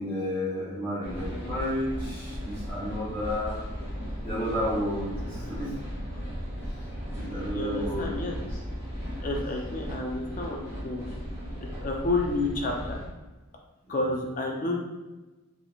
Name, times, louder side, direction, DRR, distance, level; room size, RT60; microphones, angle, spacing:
voice 1, 0.0-3.6 4.2-5.8 6.7-6.9 7.1-8.6 8.9-9.3 13.8-14.0, equal, 10° left, -10 dB, 1.2 m, -32 dB
sound 1, 1.0-13.1, equal, 10° right, 0.8 m, -36 dB
voice 2, 7.5-8.3 9.2-11.1 11.8-13.0 13.9-14.8, left 2 dB, 35° left, 0 dB, 0.4 m, -30 dB
2.9 x 2.8 x 2.3 m, 1.1 s
head